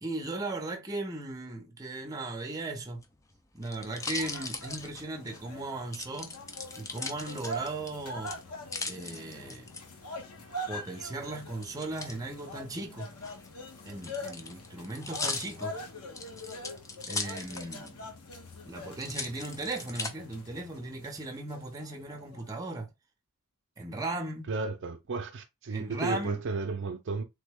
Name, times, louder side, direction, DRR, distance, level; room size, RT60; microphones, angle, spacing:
voice 1, 0.0-3.1 3.5-6.4 6.7-8.3 8.8-9.7 10.7-13.1 13.8-15.8 17.1-18.1 18.7-22.9 23.8-24.5 25.7-26.4, right 2 dB, 15° right, 0.7 m, -37 dB
sound 1, 2.9-5.4 5.9-7.9 8.3-9.8 11.6-12.2 13.1-18.0 18.3-18.4 19.0-20.1 20.7-21.3, left 3 dB, 15° left, 0.4 m, -38 dB
sound 2, 3.9-22.6, left 1 dB, 80° left, 0.9 m, -44 dB
voice 2, 24.5-27.2, right 4 dB, 55° right, 0.5 m, -33 dB
3.4 x 2.2 x 3.4 m
head